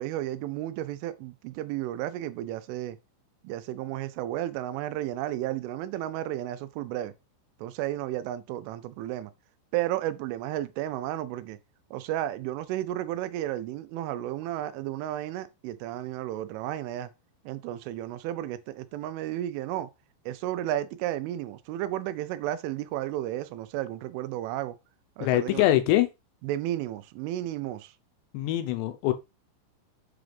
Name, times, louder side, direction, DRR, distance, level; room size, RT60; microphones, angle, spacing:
voice 1, 0.0-3.0 3.4-7.1 7.6-9.3 9.7-11.6 11.9-17.1 17.5-19.9 20.3-24.8 25.2-25.7 26.4-27.9, right 13 dB, 90° right, 3.2 m, -33 dB
voice 2, 25.2-26.1 28.3-29.1, left 14 dB, 75° left, 2.8 m, -23 dB
8.0 x 3.8 x 5.2 m
omnidirectional pair, 5.5 m